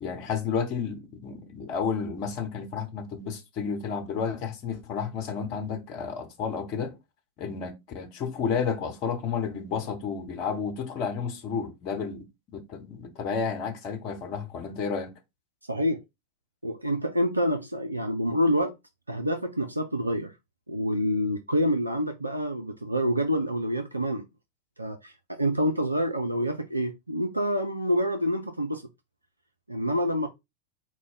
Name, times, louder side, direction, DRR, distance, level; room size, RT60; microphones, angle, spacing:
voice 1, 0.0-6.9 7.4-12.2 12.5-15.1, left 6 dB, 40° left, 0.9 m, -31 dB
voice 2, 15.7-16.0 16.6-18.8 19.1-20.3 20.7-24.3 24.8-28.8 29.7-30.3, equal, 85° right, 0.4 m, -27 dB
4.7 x 2.2 x 3.9 m
figure-of-eight pair, 90°, 0 cm